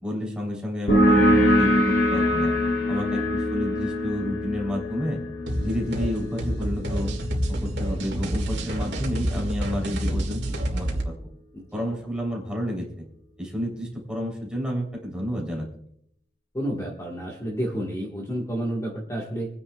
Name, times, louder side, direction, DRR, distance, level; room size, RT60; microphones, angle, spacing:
voice 1, 0.0-2.5 2.9-5.2 5.6-7.1 7.5-10.4 10.7-11.2 11.7-13.1 13.4-15.7, equal, 5° right, -2 dB, 3.5 m, -30 dB
sound 1, 0.9-8.1, equal, 80° left, 3.4 m, -23 dB
sound 2, 5.5-11.1, equal, 70° right, 2.1 m, -28 dB
voice 2, 16.5-19.5, equal, 20° left, -3 dB, 1.6 m, -30 dB
27.0 x 9.9 x 2.4 m, 0.68 s
head